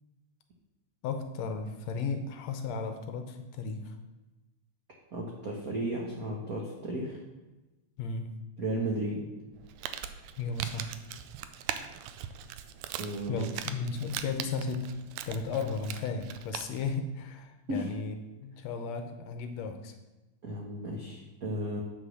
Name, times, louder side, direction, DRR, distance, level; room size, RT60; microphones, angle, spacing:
voice 1, 1.0-4.0 8.0-8.3 10.4-10.9 13.3-15.0 15.3-18.2 18.4-19.9, left 4 dB, 75° left, 7 dB, 1.8 m, -34 dB
voice 2, 5.1-7.2 8.6-9.2 13.0-13.5 17.7-17.9 20.4-21.8, right 1 dB, 65° right, -1 dB, 0.9 m, -34 dB
Crumpling crinkling, 9.5-16.9, right 10 dB, 85° right, 2.1 m, -41 dB
8.3 x 6.0 x 6.3 m, 1.1 s
omnidirectional pair, 3.4 m